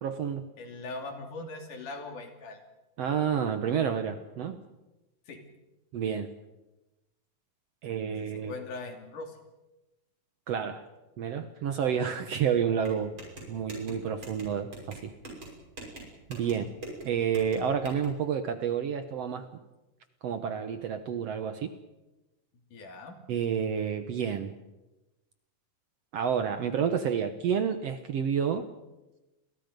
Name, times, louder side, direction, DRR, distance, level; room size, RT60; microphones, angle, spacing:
voice 1, 0.0-0.4 3.0-4.6 5.9-6.3 7.8-8.5 10.5-10.8 11.2-13.1 13.5-15.1 16.3-16.7 17.0-19.5 20.2-21.7 23.3-24.5 26.1-28.7, right 7 dB, 65° right, 9 dB, 1.8 m, -29 dB
voice 2, 0.6-2.6 5.3-5.4 8.3-9.4 16.4-16.6 22.7-23.2, left 3 dB, 70° left, 4 dB, 4.3 m, -40 dB
sound 1, 12.8-18.1, right 2 dB, 35° right, 6.9 m, -44 dB
29.5 x 22.5 x 5.3 m, 1.0 s
omnidirectional pair, 3.8 m